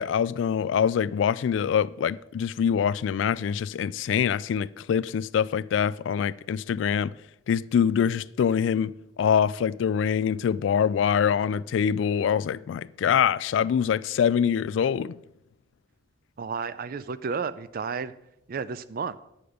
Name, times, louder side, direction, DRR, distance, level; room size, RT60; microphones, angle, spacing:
voice 1, 0.0-7.1 7.5-15.2, left 7 dB, 75° left, 0.3 m, -24 dB
voice 2, 16.4-18.1 18.5-19.2, right 5 dB, 50° right, 0.4 m, -32 dB
9.5 x 6.8 x 5.0 m
head